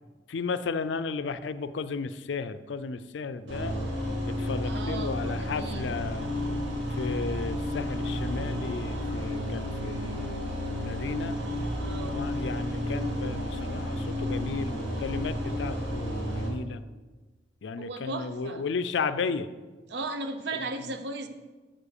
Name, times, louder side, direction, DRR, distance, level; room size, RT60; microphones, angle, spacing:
voice 1, 0.3-3.7 4.4-6.3 6.9-11.4 12.0-16.8 17.6-19.5, left 4 dB, 70° left, 13 dB, 0.4 m, -34 dB
sound 1, 3.5-16.5, equal, 85° right, 2.9 m, -32 dB
voice 2, 4.6-6.0 11.8-12.2 17.8-18.6 19.9-21.3, right 2 dB, 65° right, 9 dB, 0.7 m, -36 dB
7.4 x 5.0 x 6.5 m, 1.3 s
head